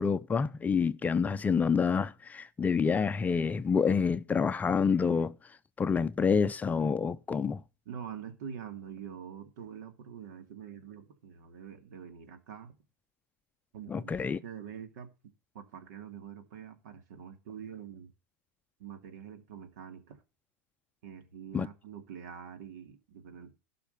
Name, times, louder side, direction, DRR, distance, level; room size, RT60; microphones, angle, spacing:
voice 1, 0.0-5.3 5.8-7.6 13.9-14.4 21.5-21.7, left 5 dB, 15° left, 0.5 m, -27 dB
voice 2, 7.9-12.8 13.7-15.1 15.5-18.1 18.8-20.2 21.0-23.5, right 8 dB, 70° right, 2.6 m, -45 dB
12.5 x 5.8 x 6.8 m
supercardioid pair, 125°, 10 cm